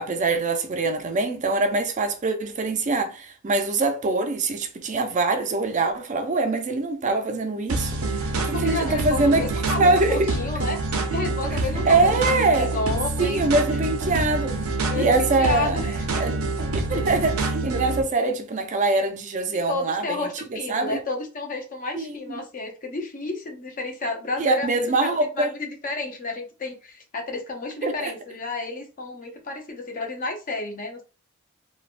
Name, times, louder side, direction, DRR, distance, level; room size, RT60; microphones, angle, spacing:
voice 1, 0.0-9.5 9.8-10.3 11.8-12.7 13.2-14.6 15.0-16.4 16.7-21.0 22.0-22.4 24.4-25.5 27.8-28.1, right 3 dB, 35° right, 0.4 m, -23 dB
sound 1, 7.7-18.0, right 2 dB, 80° right, 0.6 m, -26 dB
voice 2, 8.5-10.8 11.1-13.4 14.9-16.2 19.7-31.0, left 3 dB, 40° left, 0.7 m, -31 dB
3.3 x 2.2 x 2.4 m
head